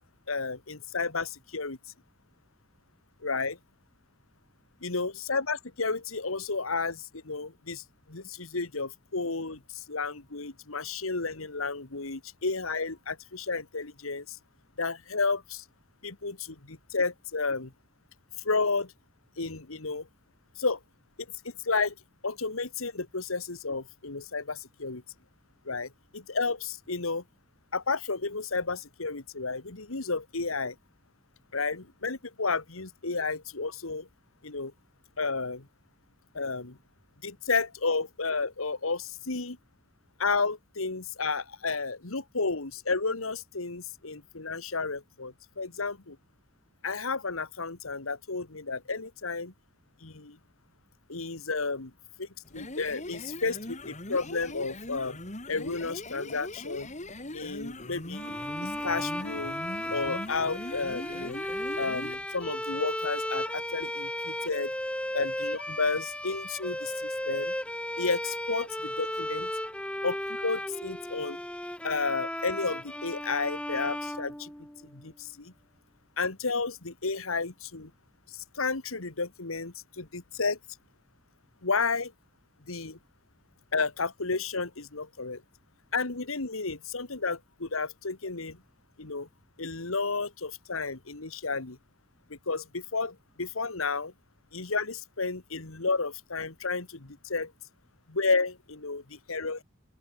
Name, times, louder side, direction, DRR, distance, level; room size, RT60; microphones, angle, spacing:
voice 1, 0.3-1.8 3.2-3.6 4.8-14.4 14.8-15.6 16.0-17.7 18.4-18.9 19.4-20.1 20.6-20.8 21.4-22.0 22.2-25.0 25.7-27.2 27.7-30.8 31.5-34.1 34.4-34.7 35.2-35.7 36.3-36.8 37.2-39.6 40.2-46.2 46.8-49.5 50.0-50.4 51.1-51.9 52.2-55.2 55.5-56.9 57.3-58.3 58.6-59.6 59.9-61.4 61.8-64.7 65.1-67.5 68.0-69.5 70.0-71.4 71.8-74.5 74.9-75.5 76.2-77.9 78.3-80.6 81.6-82.1 82.7-83.0 83.7-85.4 85.9-88.6 89.0-89.3 89.6-91.8 92.3-94.1 94.5-97.5 98.1-99.6, left 4 dB, 90° left, 1.9 m, -32 dB
sound 1, 52.5-62.3, left 1 dB, 35° left, 4.7 m, -41 dB
sound 2, 58.1-75.0, left 1 dB, 5° left, 4.7 m, -35 dB
open air
head